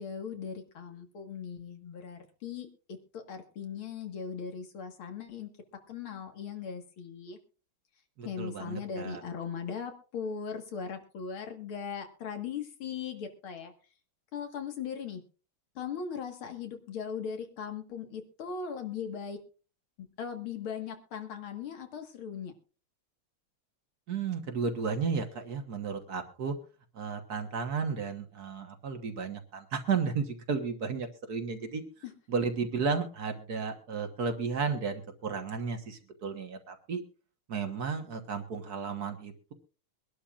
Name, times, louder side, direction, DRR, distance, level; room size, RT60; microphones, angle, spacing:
voice 1, 0.0-2.7 3.1-5.5 5.9-7.4 8.3-13.7 14.3-15.2 15.8-19.4 20.0-22.5 32.0-32.1, left 6 dB, 85° left, 5 dB, 2.5 m, -39 dB
voice 2, 8.2-9.2 24.1-26.6 27.0-31.8 32.3-37.0 37.5-39.5, right 5 dB, 50° right, 6 dB, 1.7 m, -33 dB
23.5 x 11.5 x 2.5 m, 0.36 s
omnidirectional pair, 2.2 m